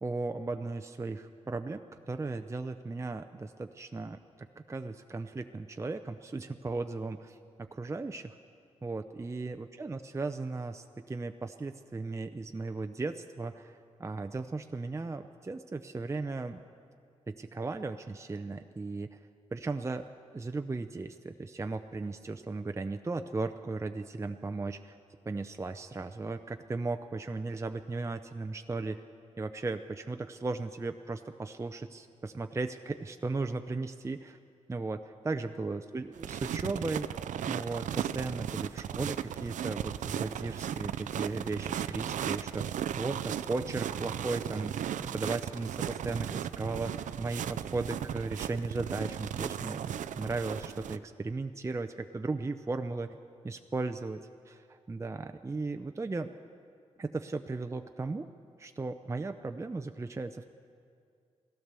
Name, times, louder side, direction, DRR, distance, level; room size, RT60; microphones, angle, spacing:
voice 1, 0.0-4.2 4.6-8.3 8.8-16.6 17.3-19.2 19.5-20.1 20.3-25.0 25.3-29.0 29.4-34.4 34.7-37.2 37.5-53.2 53.4-56.3 57.0-58.3 58.6-60.4, right 3 dB, 25° right, 7 dB, 0.5 m, -36 dB
sound 1, 36.2-51.0, right 9 dB, 85° right, 0.4 m, -36 dB
16.5 x 12.5 x 6.8 m, 2.3 s
cardioid pair, 70°, 12 cm